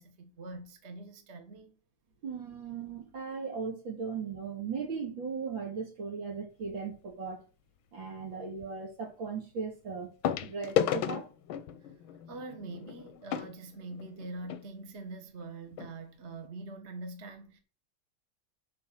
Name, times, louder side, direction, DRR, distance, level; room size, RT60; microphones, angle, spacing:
voice 1, 0.0-1.7 11.8-11.9 12.3-17.6, right 2 dB, 35° right, 1.6 m, -44 dB
voice 2, 2.2-7.4 7.9-10.1 10.4-11.3, right 5 dB, 75° right, 2.9 m, -37 dB
sound 1, 6.7-7.0 8.6-8.7 10.2-14.6 15.4-15.5 15.7-15.9 16.4-16.5, left 10 dB, 90° left, 1.6 m, -34 dB
11.0 x 4.3 x 6.2 m
omnidirectional pair, 2.2 m